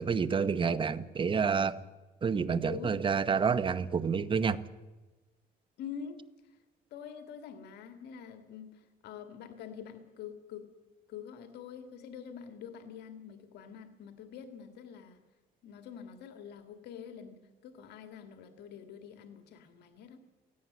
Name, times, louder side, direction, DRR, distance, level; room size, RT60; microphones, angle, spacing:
voice 1, 0.0-1.8 2.2-4.6, right 6 dB, 30° right, 15 dB, 1.1 m, -29 dB
voice 2, 2.6-3.0 5.8-6.2 6.9-10.7 11.1-15.2 15.6-20.2, left 8 dB, 75° left, 7 dB, 2.0 m, -46 dB
17.0 x 17.0 x 9.4 m, 1.2 s
cardioid pair, 110°, 17 cm